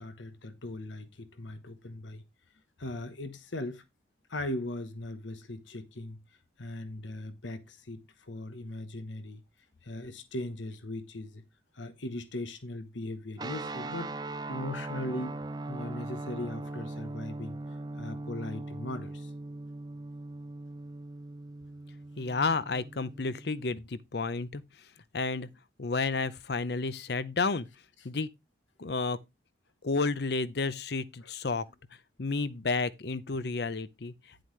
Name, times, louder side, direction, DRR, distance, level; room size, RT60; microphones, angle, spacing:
voice 1, 0.0-2.2 2.8-3.8 4.3-6.2 6.6-9.4 9.8-11.4 11.7-14.1 14.5-15.4 15.7-19.3, left 1 dB, 90° left, 1.1 m, -39 dB
sound 1, 13.4-23.7, right 2 dB, 20° right, 0.5 m, -40 dB
voice 2, 22.2-24.6 25.1-25.5 25.8-27.7 28.0-28.3 28.8-29.2 29.8-31.7 32.2-34.4, left 3 dB, 60° left, 0.6 m, -31 dB
10.0 x 7.7 x 3.2 m
head